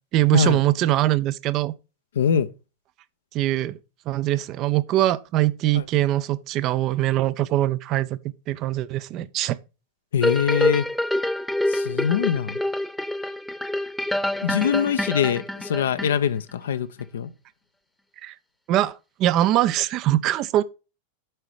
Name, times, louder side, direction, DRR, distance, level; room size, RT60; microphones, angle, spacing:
voice 1, 0.1-1.7 3.3-3.8 4.1-8.2 8.5-9.6 18.2-18.3 18.7-20.6, right 14 dB, 35° right, 0.5 m, -22 dB
voice 2, 2.2-2.5 5.7-5.8 10.1-10.9 11.7-12.6 14.4-16.9 17.1-17.3, left 8 dB, 60° left, 0.6 m, -23 dB
sound 1, 10.2-16.5 17.0-17.1, left 1 dB, 5° left, 0.9 m, -26 dB
7.6 x 4.8 x 4.6 m
figure-of-eight pair, 90°, 0 cm